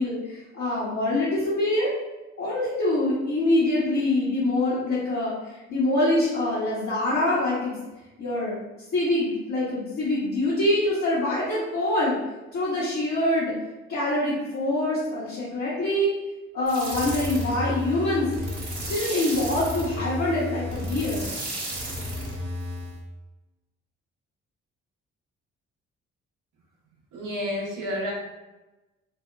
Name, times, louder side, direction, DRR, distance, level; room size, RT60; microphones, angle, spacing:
voice 1, 0.0-1.9 2.4-5.3 5.7-7.7 8.2-8.6 8.9-12.2 12.5-13.5 13.9-16.1 16.5-18.3 18.9-21.3, left 1 dB, 55° left, -10 dB, 0.9 m, -25 dB
sound 1, 16.7-23.0, equal, 50° right, 1.2 m, -32 dB
voice 2, 27.1-28.1, left 1 dB, 65° right, -3 dB, 0.8 m, -30 dB
2.7 x 2.1 x 2.3 m, 1.1 s
hypercardioid pair, 40°, 34 cm